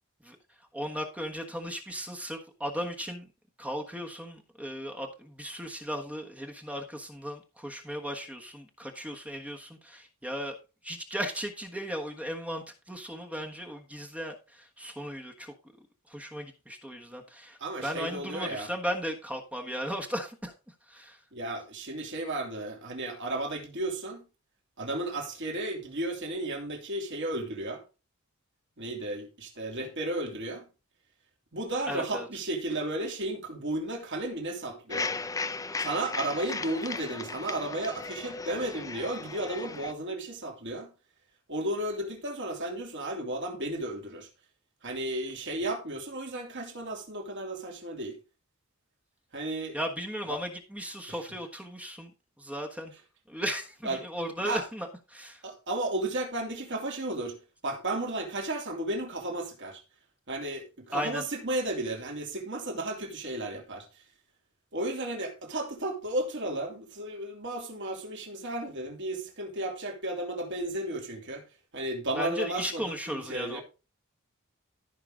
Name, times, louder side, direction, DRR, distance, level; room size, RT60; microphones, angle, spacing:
voice 1, 0.2-3.3 3.6-10.6 10.8-15.5 16.1-21.2 31.9-32.3 49.7-52.1 52.4-52.9 53.3-55.4 60.9-61.2 72.1-73.6, equal, 5° right, 1.3 m, -36 dB
voice 2, 17.6-18.7 21.3-24.2 24.8-27.8 28.8-30.7 31.5-35.1 35.8-40.9 41.5-44.3 44.8-48.2 49.3-49.8 50.3-50.4 51.1-51.2 53.8-54.0 54.4-54.6 55.4-57.4 57.6-59.8 60.3-63.9 64.7-71.4 71.7-73.6, right 1 dB, 55° right, 2.9 m, -34 dB
sound 1, 34.9-39.9, left 4 dB, 15° left, 0.6 m, -36 dB
14.0 x 5.8 x 3.8 m
head